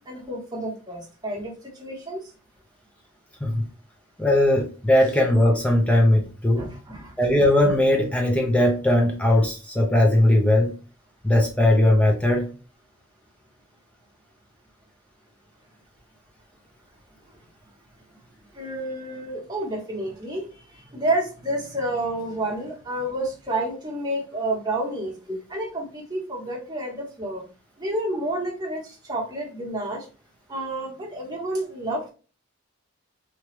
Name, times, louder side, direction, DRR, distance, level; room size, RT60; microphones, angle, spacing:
voice 1, 0.0-2.3 6.6-7.1 18.5-25.2 25.5-27.5 27.8-30.1 30.5-32.1, right 1 dB, 20° right, -3 dB, 1.0 m, -30 dB
voice 2, 4.2-6.7 7.2-10.7 11.2-12.5 25.3-25.4, left 1 dB, 5° left, 1 dB, 0.4 m, -19 dB
2.9 x 2.3 x 3.0 m, 0.36 s
head